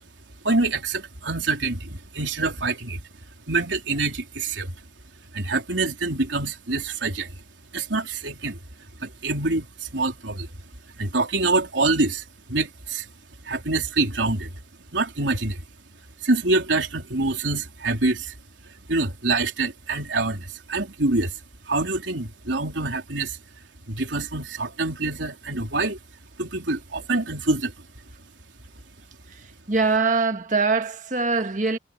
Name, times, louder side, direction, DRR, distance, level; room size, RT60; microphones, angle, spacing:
voice 1, 0.4-3.0 3.5-4.8 5.3-7.4 7.7-8.6 9.0-10.5 10.9-13.1 13.4-14.5 14.9-15.6 16.2-18.3 18.9-21.4 21.7-23.4 23.9-26.0 26.4-27.7, right 3 dB, 85° right, 4.0 m, -25 dB
voice 2, 29.3-31.8, right 4 dB, 45° right, 1.6 m, -23 dB
head